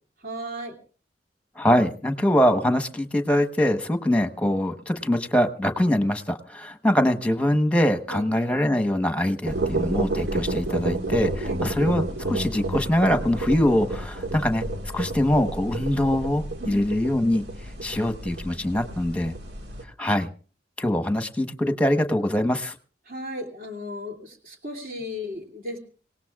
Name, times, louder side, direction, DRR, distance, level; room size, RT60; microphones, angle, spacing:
voice 1, 0.2-0.8 8.1-8.2 11.4-11.6 16.6-16.8 23.0-25.8, left 1 dB, 55° right, 2 dB, 2.8 m, -35 dB
voice 2, 1.6-14.6 14.9-17.4 17.8-19.3 20.0-20.3 20.8-22.7, left 1 dB, 5° left, 6 dB, 1.1 m, -23 dB
sound 1, 9.5-19.8, right 2 dB, 80° right, 1.9 m, -30 dB
26.5 x 18.0 x 2.4 m, 0.39 s
head